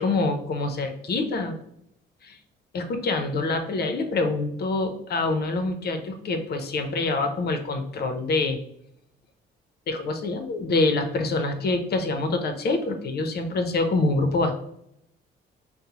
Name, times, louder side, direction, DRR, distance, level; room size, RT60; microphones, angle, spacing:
voice 1, 0.0-1.6 2.2-2.4 2.7-8.6 9.9-14.5, left 3 dB, 55° left, 7 dB, 0.6 m, -26 dB
5.1 x 2.0 x 2.9 m, 0.74 s
cardioid pair, 90°, 20 cm